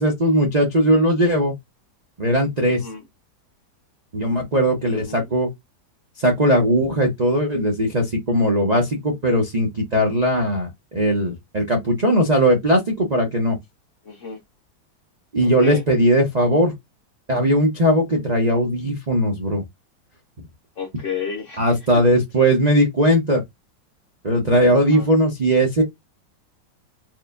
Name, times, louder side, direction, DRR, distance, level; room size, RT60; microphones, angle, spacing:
voice 1, 0.0-1.5 2.2-2.8 4.1-5.5 6.2-13.6 15.3-16.7 17.3-19.6 21.6-23.4 24.2-25.8, equal, 50° right, 0.5 m, -19 dB
voice 2, 2.6-3.1 4.8-5.3 14.0-14.4 15.4-15.8 20.8-22.0 24.7-25.1, left 6 dB, 65° left, 0.7 m, -32 dB
4.6 x 3.0 x 2.5 m
omnidirectional pair, 2.2 m